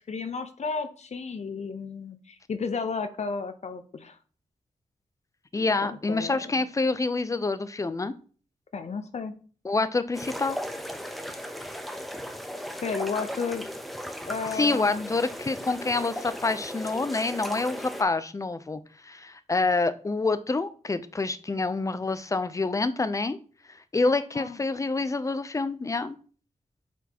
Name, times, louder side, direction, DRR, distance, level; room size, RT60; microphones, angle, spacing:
voice 1, 0.0-4.2 5.8-6.6 8.7-9.3 12.8-13.6 14.3-15.1 24.3-24.6, left 5 dB, 60° left, 9 dB, 0.7 m, -33 dB
voice 2, 5.5-8.1 9.6-10.6 14.5-23.4 23.7-26.2, left 3 dB, 25° left, 13 dB, 0.5 m, -27 dB
sound 1, 10.1-18.0, equal, ahead, 0.8 m, -37 dB
8.2 x 4.3 x 2.9 m, 0.40 s
wide cardioid pair, 95°, 13 cm